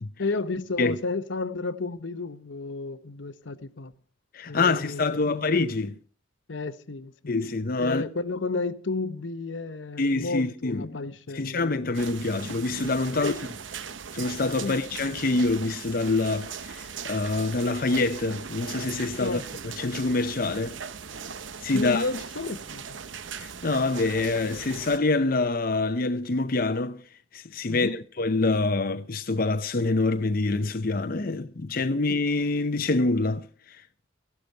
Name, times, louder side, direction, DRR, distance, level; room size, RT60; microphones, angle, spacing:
voice 1, 0.2-3.9 4.5-5.5 6.5-7.3 7.8-11.6 13.2-13.4 14.6-14.8 19.2-19.5 21.7-23.0 27.7-28.0 31.9-32.0, left 3 dB, 80° left, 0.9 m, -32 dB
voice 2, 4.3-5.9 7.3-8.1 10.0-10.9 11.3-13.3 14.1-19.4 19.8-20.8 21.6-22.0 23.4-27.0 27.3-33.8, left 3 dB, 50° left, 0.7 m, -26 dB
sound 1, 11.9-25.0, right 6 dB, 80° right, 0.9 m, -39 dB
15.0 x 12.0 x 4.5 m
head